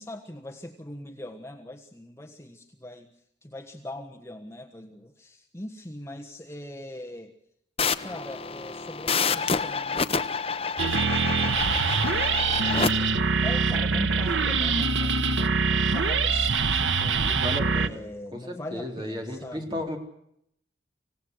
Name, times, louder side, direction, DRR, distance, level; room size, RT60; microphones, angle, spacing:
voice 1, 0.0-3.1 3.4-7.3 8.0-10.2 10.8-17.3 17.7-19.8, left 1 dB, 15° left, 3 dB, 1.4 m, -42 dB
sound 1, 7.8-12.9, left 5 dB, 30° left, 1.0 m, -28 dB
sound 2, 10.8-17.9, right 4 dB, 90° right, 1.2 m, -24 dB
voice 2, 17.2-18.0 18.3-20.0, left 1 dB, 25° right, 2 dB, 4.0 m, -34 dB
26.0 x 17.5 x 8.0 m, 0.75 s
head